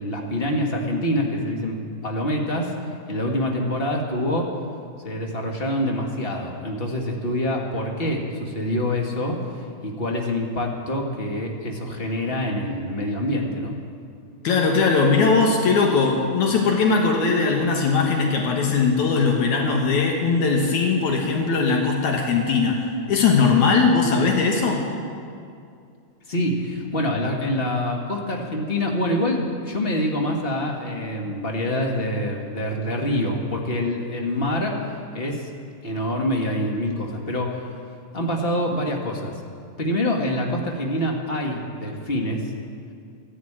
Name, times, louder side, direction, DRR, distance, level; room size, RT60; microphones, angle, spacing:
voice 1, 0.0-2.7 3.1-4.5 5.0-13.8 26.3-34.8 35.1-35.5 35.8-37.7 38.1-39.3 39.8-42.4, left 1 dB, 30° left, 1 dB, 1.1 m, -26 dB
voice 2, 14.4-22.8 23.1-24.9, left 4 dB, 75° left, 1 dB, 2.7 m, -20 dB
14.5 x 11.0 x 8.7 m, 2.3 s
omnidirectional pair, 3.4 m